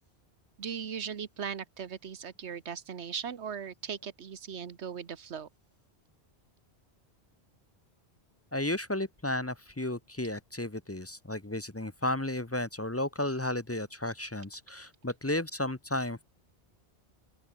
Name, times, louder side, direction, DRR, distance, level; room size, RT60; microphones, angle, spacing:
voice 1, 0.6-5.5, right 7 dB, 85° right, 1.5 m, -38 dB
voice 2, 8.5-16.2, left 1 dB, 15° left, 0.8 m, -33 dB
open air
omnidirectional pair, 1.1 m